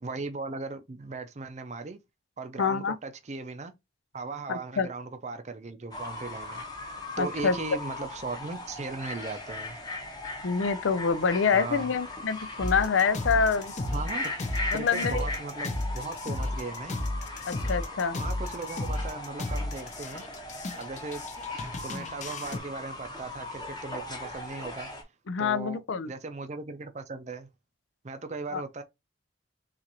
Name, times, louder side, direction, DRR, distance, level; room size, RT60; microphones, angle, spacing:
voice 1, 0.0-2.0 2.4-3.7 4.1-6.6 7.2-9.8 11.5-11.9 13.9-14.3 14.7-17.0 18.1-20.3 20.8-21.2 21.8-24.9 25.4-25.8 26.1-27.5 28.0-28.8, right 3 dB, 35° right, 0.5 m, -37 dB
voice 2, 2.6-3.0 4.5-4.9 7.2-7.6 10.4-13.7 14.7-15.2 17.5-18.2 25.3-26.1 28.5-28.6, left 5 dB, 85° left, 0.5 m, -26 dB
Fowl / Bird, 5.9-25.0, left 2 dB, 20° left, 1.0 m, -39 dB
sound 1, 12.6-22.6, left 1 dB, 40° left, 0.6 m, -34 dB
5.9 x 2.5 x 2.9 m
head